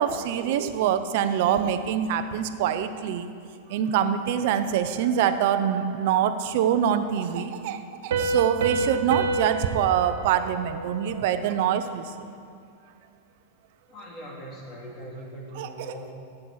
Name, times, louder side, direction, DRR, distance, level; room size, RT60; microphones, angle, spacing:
voice 1, 0.0-3.3 3.7-12.0 15.6-15.7, right 9 dB, 55° right, 10 dB, 0.7 m, -25 dB
Piano, 8.1-11.5, right 3 dB, 75° right, 1.2 m, -29 dB
voice 2, 13.9-16.1, equal, 25° left, -3 dB, 2.6 m, -40 dB
14.5 x 8.6 x 4.8 m, 2.4 s
supercardioid pair, 155°, 0 cm